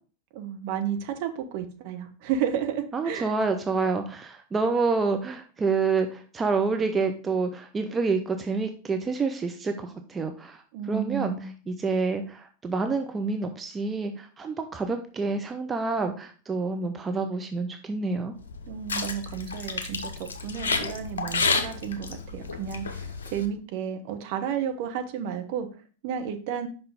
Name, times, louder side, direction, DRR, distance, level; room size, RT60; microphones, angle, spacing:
voice 1, 0.3-3.3 10.7-11.5 18.7-25.7 26.0-26.7, right 8 dB, 45° right, 6 dB, 0.9 m, -32 dB
voice 2, 2.9-10.6 10.9-18.3, right 4 dB, 20° right, 6 dB, 0.6 m, -28 dB
sound 1, 18.4-23.5, left 4 dB, 70° left, 0.7 m, -31 dB
5.6 x 5.6 x 3.5 m, 0.39 s
figure-of-eight pair, 90°, 0 cm